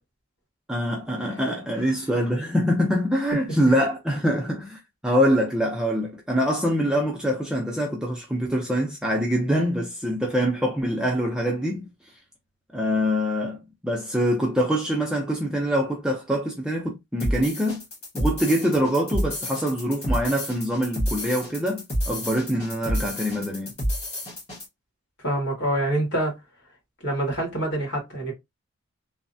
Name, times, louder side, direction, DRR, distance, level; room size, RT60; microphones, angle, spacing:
voice 1, 0.7-11.9 12.7-13.6 13.8-17.8 18.1-23.7, equal, 5° right, 0.5 m, -24 dB
sound 1, 17.2-24.7, equal, 30° left, 1.4 m, -29 dB
voice 2, 25.2-26.3 27.0-28.3, right 1 dB, 50° left, 1.8 m, -25 dB
3.2 x 2.0 x 2.6 m
head